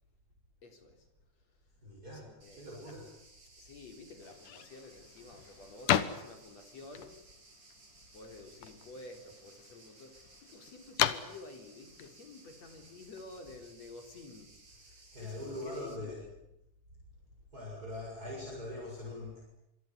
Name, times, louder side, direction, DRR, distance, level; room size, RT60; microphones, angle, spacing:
voice 1, 0.6-1.1 2.1-3.0 3.6-7.2 8.1-16.3, left 3 dB, 55° left, 5 dB, 4.8 m, -51 dB
voice 2, 1.8-3.1 15.1-16.2 17.5-19.4, left 1 dB, 25° right, -3 dB, 7.5 m, -42 dB
sound 1, 2.4-16.0, right 3 dB, 55° right, 6.6 m, -59 dB
sound 2, 4.2-13.4, left 11 dB, 80° left, 2.8 m, -38 dB
27.0 x 23.0 x 9.7 m, 0.88 s
omnidirectional pair, 3.6 m